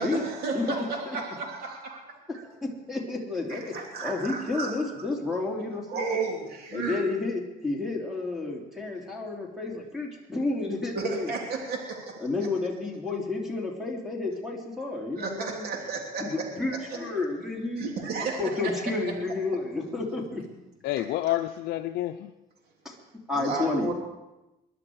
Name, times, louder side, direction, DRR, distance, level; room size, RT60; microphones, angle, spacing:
voice 1, 0.0-2.0 3.5-4.8 5.9-7.0 10.9-12.2 15.2-16.2 17.8-18.7 21.0-21.1 23.4-23.9, right 4 dB, 65° right, 3.2 m, -33 dB
voice 2, 0.5-0.8 2.4-3.7 4.0-6.2 6.7-11.3 12.2-15.7 16.2-17.9 18.4-20.7 22.8-23.0 23.3-23.9, left 3 dB, ahead, 3.6 m, -31 dB
voice 3, 20.8-22.3, left 14 dB, 75° left, 0.6 m, -29 dB
21.5 x 11.5 x 4.8 m
cardioid pair, 110°, 17 cm